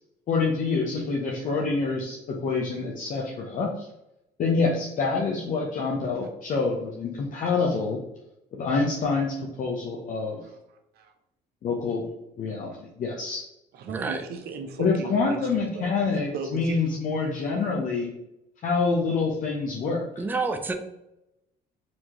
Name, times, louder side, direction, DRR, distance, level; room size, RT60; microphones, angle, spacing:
voice 1, 0.3-3.9 4.4-8.0 8.5-10.4 11.6-12.1 12.4-13.4 14.8-18.1 18.6-20.0, left 4 dB, 50° left, -1 dB, 0.7 m, -26 dB
voice 2, 10.4-11.1 12.7-12.8 13.7-15.9 16.3-17.6, right 4 dB, 70° right, 6 dB, 0.7 m, -38 dB
voice 3, 13.9-14.2 16.0-16.1 20.2-20.7, right 3 dB, 10° right, 6 dB, 0.4 m, -29 dB
4.3 x 2.8 x 2.9 m, 0.88 s
cardioid pair, 110°, 17 cm